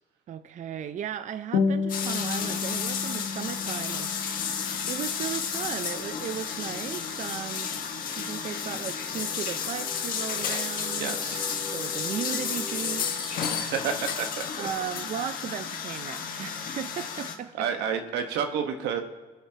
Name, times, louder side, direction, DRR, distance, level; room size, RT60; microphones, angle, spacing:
voice 1, 0.3-7.7 8.2-11.2 11.7-13.5 14.6-17.7, right 9 dB, 45° right, 11 dB, 0.5 m, -36 dB
sound 1, 1.5-6.5, left 5 dB, 85° left, 1.0 m, -32 dB
sound 2, 1.9-17.4, left 6 dB, 55° left, 1.5 m, -32 dB
sound 3, 8.5-13.1, left 2 dB, 25° left, 1.5 m, -44 dB
voice 2, 11.0-11.6 13.6-14.5 16.4-16.7 17.5-19.0, right 7 dB, 90° right, 5 dB, 1.3 m, -30 dB
23.0 x 8.0 x 2.9 m, 1.4 s
cardioid pair, 110°, 17 cm